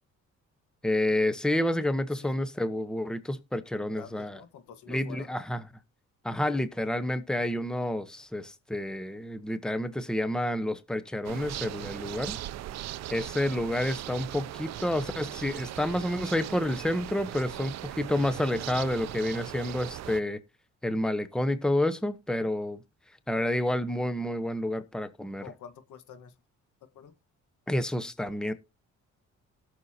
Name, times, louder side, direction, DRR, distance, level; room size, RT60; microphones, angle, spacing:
voice 1, 0.8-4.4 4.9-5.6 6.2-12.4 13.1-20.4 20.8-22.8 23.3-25.4 27.7-28.5, left 1 dB, ahead, 1.0 m, -29 dB
voice 2, 3.9-5.3 17.5-17.7 22.4-22.5 25.4-26.3 26.9-27.1, left 8 dB, 80° left, 1.5 m, -48 dB
sound 1, 11.2-20.2, right 13 dB, 60° right, 0.5 m, -39 dB
18.0 x 6.7 x 2.8 m
cardioid pair, 90°, 30 cm